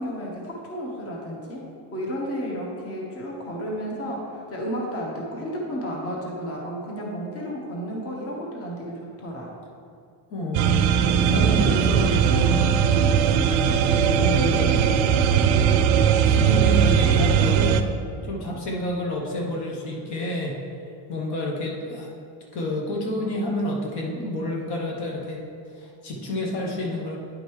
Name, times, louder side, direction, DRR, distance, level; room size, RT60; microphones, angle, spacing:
voice 1, 0.0-9.5, equal, 30° left, -2 dB, 1.1 m, -32 dB
voice 2, 10.3-12.8 13.8-14.8 16.2-17.9 18.2-20.6 21.1-22.1 22.5-25.4 25.7-27.2, left 1 dB, 55° left, -2 dB, 1.1 m, -29 dB
sound 1, 10.5-17.8, right 7 dB, 70° right, 0.5 m, -19 dB
9.6 x 5.2 x 3.1 m, 2.3 s
cardioid pair, 160°, 48 cm